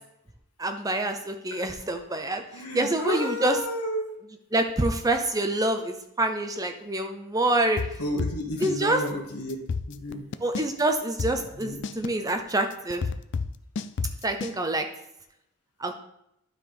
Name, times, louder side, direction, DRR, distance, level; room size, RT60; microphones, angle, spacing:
voice 1, 0.6-2.4 2.7-3.6 4.5-7.8 8.6-9.0 10.4-13.0 14.2-14.8 15.8-15.9, right 1 dB, 15° right, 6 dB, 0.5 m, -26 dB
voice 2, 2.5-4.2 8.0-9.5 9.9-10.2 11.3-11.8, equal, 85° left, 1 dB, 1.7 m, -32 dB
sound 1, 7.8-8.8 9.1-9.2 9.5-10.8 11.2-14.6, left 5 dB, 50° left, 0.3 m, -30 dB
12.0 x 4.0 x 3.4 m, 0.80 s
head